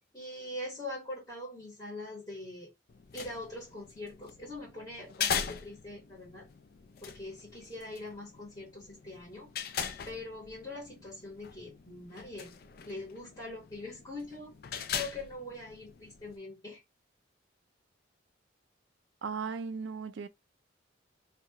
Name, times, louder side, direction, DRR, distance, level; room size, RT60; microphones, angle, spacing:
voice 1, 0.1-2.7 3.1-6.5 7.0-9.5 10.0-12.6 12.8-14.5 14.9-16.8, left 2 dB, 20° left, 1.5 m, -43 dB
sound 1, 2.9-16.4, left 7 dB, 50° left, 0.3 m, -41 dB
voice 2, 19.2-20.3, right 5 dB, 70° right, 0.4 m, -36 dB
2.7 x 2.4 x 2.9 m
head